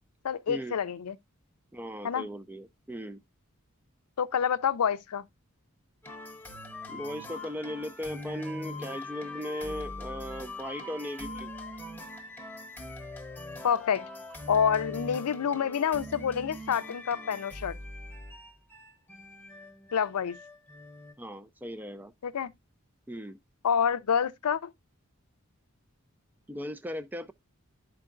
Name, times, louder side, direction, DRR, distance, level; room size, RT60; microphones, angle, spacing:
voice 1, 0.2-1.2 2.0-2.3 4.2-5.3 13.6-14.1 14.5-17.7 19.9-20.4 22.2-22.5 23.6-24.7, left 7 dB, 90° left, 0.5 m, -27 dB
voice 2, 1.7-3.2 6.9-11.5 21.2-22.1 23.1-23.4 26.5-27.3, equal, 10° right, 0.3 m, -37 dB
sound 1, 6.0-21.1, left 2 dB, 5° left, 0.8 m, -42 dB
11.5 x 4.5 x 2.4 m
head